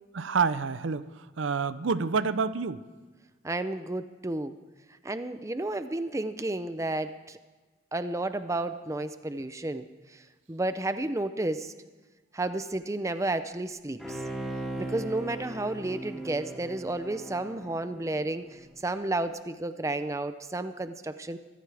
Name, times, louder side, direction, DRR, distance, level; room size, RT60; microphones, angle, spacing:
voice 1, 0.1-2.8, right 5 dB, 80° right, 14 dB, 0.6 m, -28 dB
voice 2, 3.4-4.6 5.0-7.4 7.9-9.9 10.1-10.2 10.5-11.7 12.3-14.2 14.8-21.4, right 2 dB, 15° right, 11 dB, 0.5 m, -32 dB
Bowed string instrument, 14.0-18.6 19.0-19.1, right 1 dB, ahead, 2.6 m, -38 dB
24.5 x 14.0 x 3.4 m, 1.3 s
head